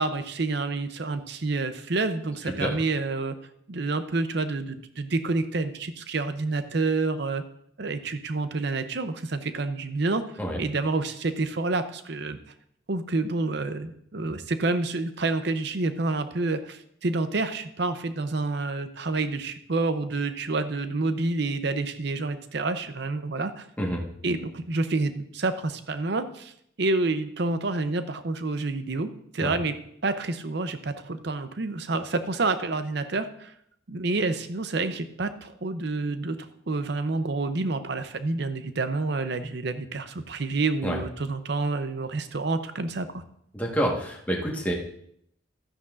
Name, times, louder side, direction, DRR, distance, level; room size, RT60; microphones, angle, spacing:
voice 1, 0.0-3.4 3.7-7.4 7.8-10.2 10.6-12.4 12.9-23.7 24.2-26.5 26.8-29.1 29.3-29.7 30.0-33.5 33.9-36.4 36.7-43.2, right 3 dB, 55° right, 10 dB, 0.6 m, -28 dB
voice 2, 43.5-44.7, equal, 10° left, -1 dB, 1.4 m, -27 dB
13.0 x 9.6 x 2.5 m, 0.70 s
head